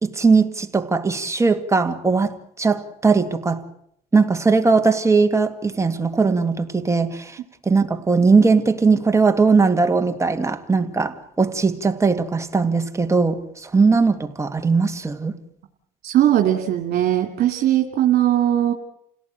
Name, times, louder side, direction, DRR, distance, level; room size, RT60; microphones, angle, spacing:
voice 1, 0.0-3.6 4.1-7.4 7.6-15.3, right 4 dB, 15° right, 2.1 m, -19 dB
voice 2, 16.0-18.7, right 12 dB, 65° right, 2.7 m, -19 dB
29.0 x 17.5 x 9.0 m
cardioid pair, 110°, 17 cm